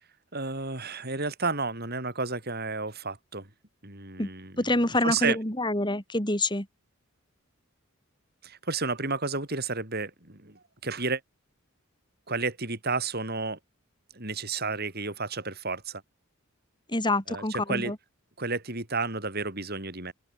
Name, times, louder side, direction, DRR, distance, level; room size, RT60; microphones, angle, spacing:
voice 1, 0.3-3.5 3.8-5.4 8.4-11.2 12.3-13.6 14.1-16.0 17.3-17.9 18.4-20.1, right 4 dB, 45° right, 5.5 m, -32 dB
voice 2, 4.6-6.7 16.9-18.0, left 2 dB, 20° left, 5.2 m, -26 dB
open air
head